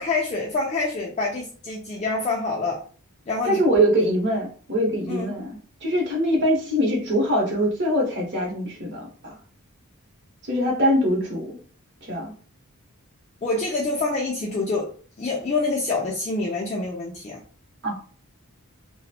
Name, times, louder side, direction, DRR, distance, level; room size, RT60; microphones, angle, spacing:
voice 1, 0.0-2.8 3.3-3.6 4.0-4.1 5.1-5.3 13.4-14.9 15.2-17.4, left 3 dB, 30° left, -3 dB, 0.3 m, -26 dB
voice 2, 3.4-9.3 10.4-11.6 12.0-12.3 17.8-17.9, equal, 50° right, -2 dB, 0.9 m, -23 dB
3.0 x 2.0 x 2.3 m, 0.43 s
head